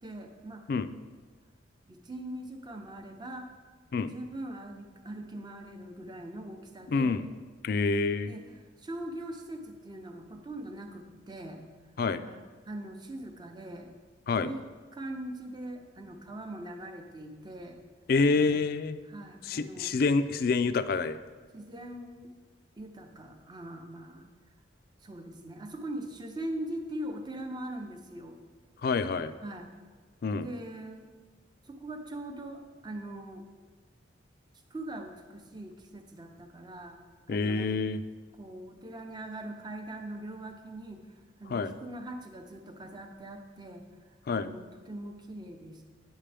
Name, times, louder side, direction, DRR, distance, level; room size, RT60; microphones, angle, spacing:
voice 1, 0.0-0.6 1.9-3.5 4.1-7.2 8.3-11.6 12.2-13.9 14.4-14.6 14.9-17.8 18.3-18.6 19.1-20.0 21.5-22.3 22.8-24.3 25.0-28.4 29.4-29.7 30.3-31.1 31.7-33.4 34.7-37.0 37.3-37.8 38.4-41.1 41.4-43.8 44.3-45.9, right 1 dB, 25° right, 4 dB, 0.7 m, -41 dB
voice 2, 6.9-7.2 7.6-8.4 12.0-12.2 14.3-14.5 18.1-19.0 19.4-21.2 28.8-29.3 30.2-30.5 37.3-38.0 41.5-41.7 44.3-44.5, left 4 dB, 50° left, 12 dB, 0.3 m, -27 dB
9.2 x 7.4 x 3.4 m, 1.4 s
head